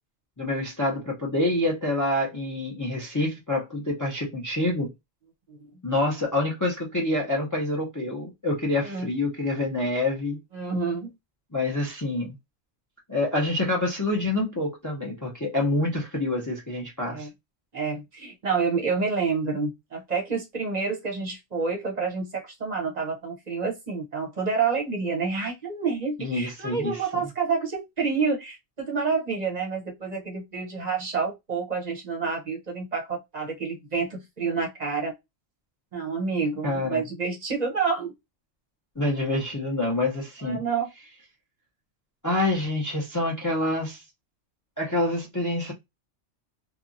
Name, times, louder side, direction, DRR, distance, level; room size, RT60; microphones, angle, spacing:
voice 1, 0.4-4.9 5.8-10.4 11.5-12.3 13.1-17.3 26.2-27.2 36.6-37.0 39.0-40.6 42.2-44.0 44.8-45.7, left 2 dB, 20° left, 0.6 m, -27 dB
voice 2, 10.5-11.1 17.1-17.3 17.7-35.1 35.9-38.1 40.4-40.9, right 5 dB, 40° right, 0.9 m, -28 dB
2.8 x 2.3 x 2.5 m
omnidirectional pair, 1.2 m